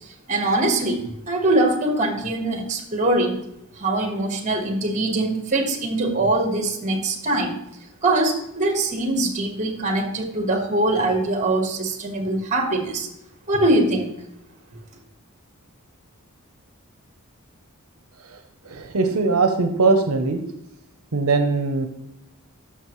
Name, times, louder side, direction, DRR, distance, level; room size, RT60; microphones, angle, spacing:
voice 1, 0.3-3.4 3.8-7.6 8.0-13.1 13.5-14.1, right 2 dB, 35° right, 5 dB, 1.4 m, -22 dB
voice 2, 18.7-20.4 21.1-21.9, right 3 dB, 75° right, 6 dB, 0.8 m, -20 dB
11.5 x 6.1 x 3.1 m, 0.81 s
head